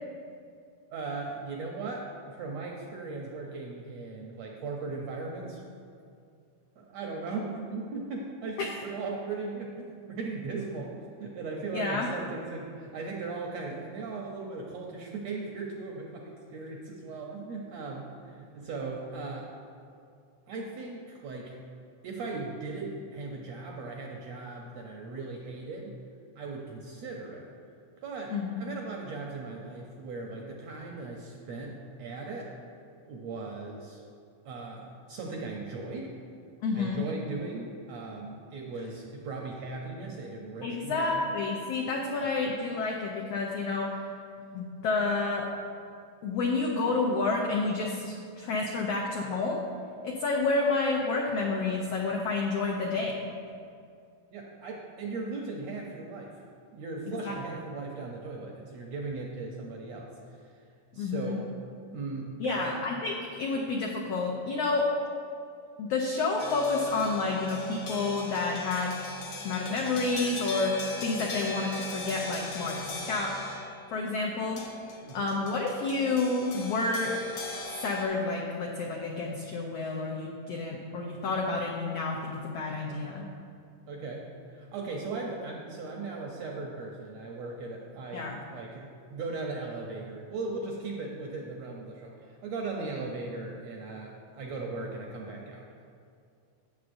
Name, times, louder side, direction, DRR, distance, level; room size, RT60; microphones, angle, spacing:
voice 1, 0.9-5.6 6.7-19.5 20.5-21.6 22.0-25.9 26.4-27.4 28.0-32.5 33.1-34.0 34.4-36.1 36.7-41.2 54.3-56.4 56.7-60.4 60.9-61.5 61.9-62.7 75.0-75.2 83.9-84.2 84.5-95.6, right 3 dB, 75° right, -1 dB, 1.6 m, -38 dB
voice 2, 11.7-12.1 28.3-28.6 36.6-37.0 40.6-44.0 44.5-45.5 46.2-49.6 50.0-53.3 57.1-57.4 61.0-61.4 62.4-64.9 65.8-68.9 69.4-72.8 73.1-73.3 73.9-74.6 75.1-77.2 77.8-83.3 88.1-88.4, left 3 dB, 85° left, -1 dB, 1.4 m, -29 dB
sound 1, 66.4-73.9 74.6-78.1, left 2 dB, 60° left, 1.5 m, -39 dB
16.5 x 6.8 x 2.6 m, 2.4 s
omnidirectional pair, 3.7 m